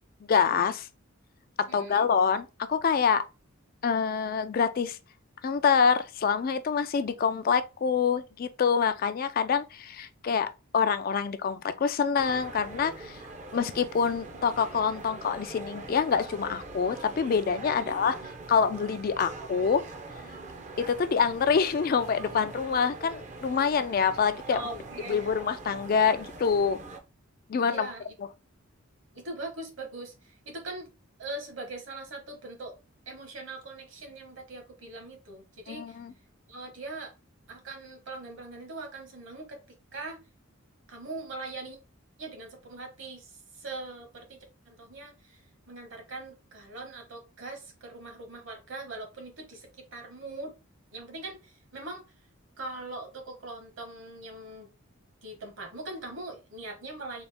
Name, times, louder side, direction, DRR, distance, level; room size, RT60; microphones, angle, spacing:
voice 1, 0.3-0.9 1.6-3.2 3.8-5.0 5.4-13.2 13.5-18.2 18.5-19.8 20.8-24.6 25.1-26.8 27.5-27.9 35.7-36.1, left 6 dB, 45° left, 0.3 m, -26 dB
voice 2, 1.7-2.1 17.7-18.0 24.5-25.4 27.7-28.1 29.1-30.9 31.2-32.8 33.1-36.0 36.5-37.1 37.5-39.6 39.9-40.2 40.9-41.8 42.2-44.4 44.6-50.5 50.9-52.0 52.6-54.7 55.2-57.2, right 2 dB, 60° right, 1.3 m, -41 dB
sound 1, 12.2-27.0, right 3 dB, 35° right, 0.5 m, -43 dB
4.0 x 2.4 x 3.4 m
head